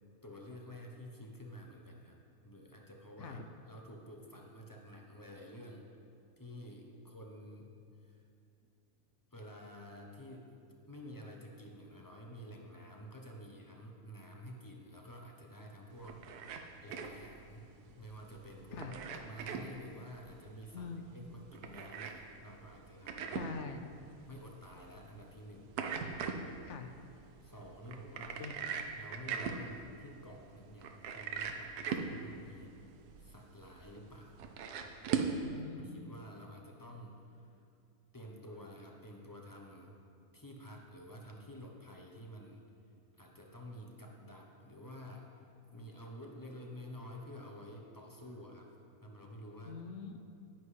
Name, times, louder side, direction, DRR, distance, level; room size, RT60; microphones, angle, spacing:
voice 1, 0.2-3.4 3.7-5.9 6.4-7.7 8.0-8.2 9.3-10.5 10.9-17.7 17.9-23.5 24.3-26.2 27.4-28.5 29.0-32.7 33.2-34.4 35.5-37.5 38.1-39.9 40.3-42.6 43.1-48.7 49.0-49.8, equal, 25° left, 0 dB, 0.5 m, -50 dB
sound 1, 15.9-35.4, right 6 dB, 85° right, 1.2 m, -41 dB
voice 2, 23.3-23.8 26.6-26.9 28.4-28.6 35.4-36.2 49.7-50.2, left 5 dB, 65° left, 7 dB, 0.7 m, -44 dB
10.5 x 9.9 x 3.3 m, 2.5 s
omnidirectional pair, 1.6 m